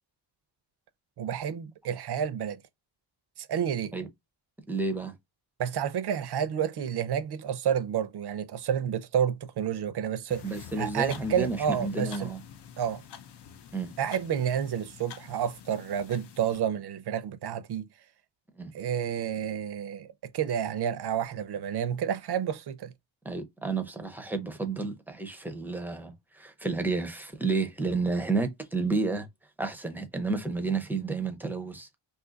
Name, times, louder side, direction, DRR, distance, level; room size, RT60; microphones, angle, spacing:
voice 1, 1.2-2.6 3.4-3.9 5.6-10.4 10.8-12.3 12.8-13.0 14.0-17.9 18.7-22.9, right 8 dB, 60° right, 0.6 m, -30 dB
voice 2, 4.7-5.1 10.4-12.4 13.7-13.9 18.6-18.7 23.2-29.3 29.6-31.9, right 3 dB, 5° right, 0.5 m, -31 dB
sound 1, 10.3-16.6, left 8 dB, 60° left, 0.6 m, -47 dB
2.7 x 2.4 x 3.8 m
wide cardioid pair, 145°, 46 cm